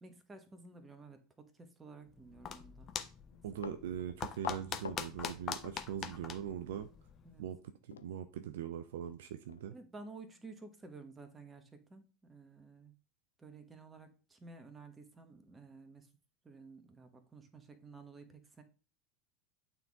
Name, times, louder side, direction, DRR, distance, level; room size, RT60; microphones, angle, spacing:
voice 1, 0.0-2.9 7.2-7.4 9.7-12.9 13.4-16.1 16.4-18.6, right 3 dB, 15° right, 1.2 m, -53 dB
sound 1, 2.1-7.5, left 7 dB, 35° left, 0.7 m, -43 dB
Run, 3.3-6.2 6.5-6.6 7.9-8.1 8.5-8.6 9.1-9.2 9.5-9.7 10.2-10.3, left 8 dB, 75° left, 0.4 m, -48 dB
voice 2, 3.4-6.9 7.4-7.6 7.9-9.7, right 9 dB, 65° right, 0.4 m, -41 dB
8.8 x 4.0 x 3.6 m
figure-of-eight pair, 75°, 0 cm